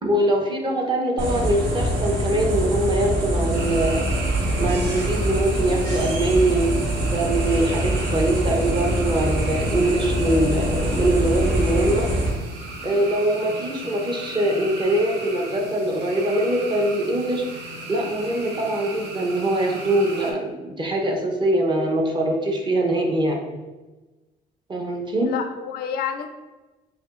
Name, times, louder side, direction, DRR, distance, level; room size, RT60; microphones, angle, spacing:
voice 1, 0.0-4.0 4.6-6.7 7.0-12.1 12.8-17.4 17.9-23.4 24.7-25.3, right 1 dB, 25° right, 1 dB, 0.8 m, -23 dB
sound 1, 1.2-12.3, right 1 dB, 70° right, 1.3 m, -24 dB
sound 2, 3.5-20.3, right 2 dB, 85° right, 0.8 m, -36 dB
voice 2, 25.2-26.3, left 8 dB, 65° left, 7 dB, 0.4 m, -31 dB
6.0 x 2.6 x 2.5 m, 1.2 s
cardioid pair, 110°, 17 cm